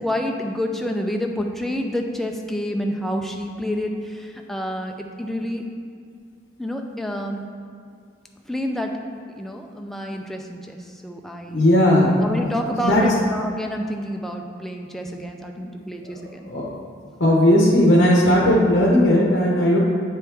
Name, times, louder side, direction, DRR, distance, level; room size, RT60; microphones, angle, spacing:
voice 1, 0.0-5.6 6.6-7.4 8.4-9.0 9.4-11.6 12.2-16.5, equal, ahead, 2 dB, 0.4 m, -28 dB
voice 2, 11.5-12.1 12.8-13.0 16.0-16.1 16.4-16.7 17.2-19.8, left 1 dB, 60° left, -4 dB, 0.9 m, -16 dB
8.1 x 4.6 x 3.4 m, 2.3 s
head